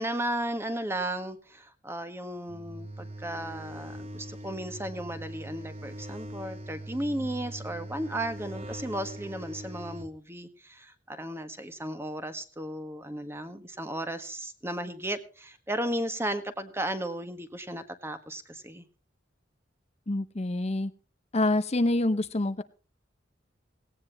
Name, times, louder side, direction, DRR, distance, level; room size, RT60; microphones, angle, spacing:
voice 1, 0.0-18.8, right 1 dB, 15° right, 9 dB, 1.5 m, -35 dB
sound 1, 2.5-10.1, right 1 dB, 35° right, 1.0 m, -41 dB
voice 2, 20.1-20.9 21.3-22.6, left 2 dB, 35° left, 10 dB, 0.7 m, -26 dB
17.5 x 17.5 x 3.0 m, 0.36 s
head